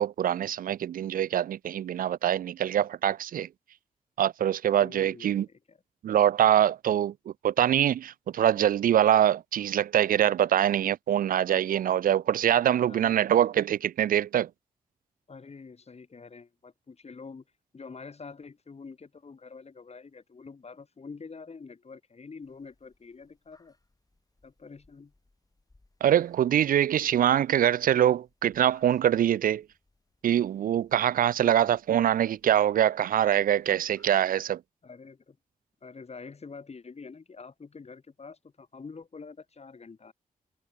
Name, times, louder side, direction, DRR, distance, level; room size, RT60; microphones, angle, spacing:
voice 1, 0.0-3.5 4.2-5.5 6.0-7.1 7.4-14.5 26.0-29.6 30.2-34.6, right 10 dB, 75° right, 0.4 m, -24 dB
voice 2, 4.8-5.8 12.9-13.4 15.3-17.4 17.7-23.8 24.4-25.1 31.4-31.6 34.8-35.4 35.8-40.1, left 4 dB, 45° left, 3.0 m, -46 dB
sound 1, 22.4-34.4, left 2 dB, 25° left, 7.7 m, -68 dB
cardioid pair, 65°, 15 cm